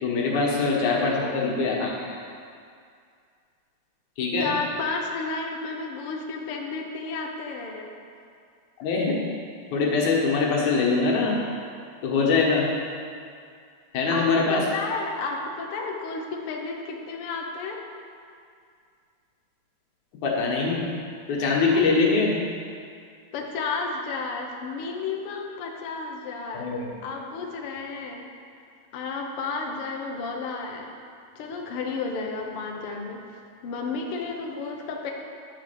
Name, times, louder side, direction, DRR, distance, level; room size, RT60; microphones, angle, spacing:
voice 1, 0.0-2.2 4.2-4.5 8.8-9.2 9.7-11.4 12.0-12.7 13.9-14.6 20.2-21.0 21.3-22.4 26.5-26.9, left 4 dB, 85° left, -3 dB, 2.8 m, -23 dB
voice 2, 1.0-1.5 4.4-7.9 14.1-17.8 21.7-21.8 23.3-26.7 27.0-28.3 28.9-31.0 31.3-35.1, left 4 dB, 65° left, 1 dB, 1.5 m, -32 dB
11.0 x 4.4 x 6.8 m, 2.3 s
omnidirectional pair, 3.3 m